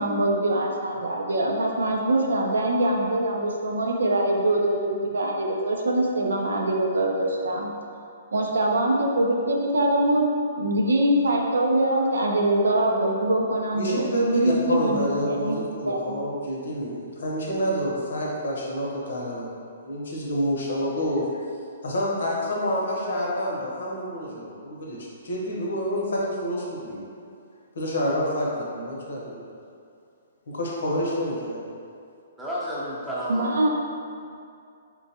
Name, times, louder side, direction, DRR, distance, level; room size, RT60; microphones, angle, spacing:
voice 1, 0.0-7.7 8.3-10.3 10.6-15.6 15.9-16.2 33.3-33.7, right 1 dB, 90° right, 0 dB, 0.5 m, -23 dB
voice 2, 13.7-21.4 21.8-27.0 27.7-29.5 30.5-31.6, equal, 75° left, -3 dB, 0.8 m, -28 dB
voice 3, 32.4-33.7, equal, 5° right, -9 dB, 0.7 m, -31 dB
4.4 x 2.2 x 2.8 m, 2.4 s
hypercardioid pair, 145°, 0 cm